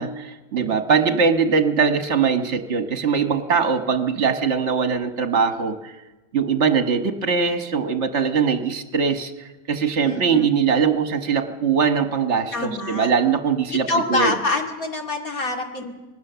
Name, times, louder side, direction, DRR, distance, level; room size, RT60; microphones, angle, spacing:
voice 1, 0.0-5.9 6.3-9.3 9.7-14.3, right 6 dB, 45° right, 7 dB, 1.6 m, -21 dB
voice 2, 10.0-10.5 12.5-13.1 13.7-15.9, left 2 dB, 60° left, 2 dB, 2.8 m, -25 dB
25.5 x 19.0 x 6.9 m, 1.2 s
omnidirectional pair, 1.7 m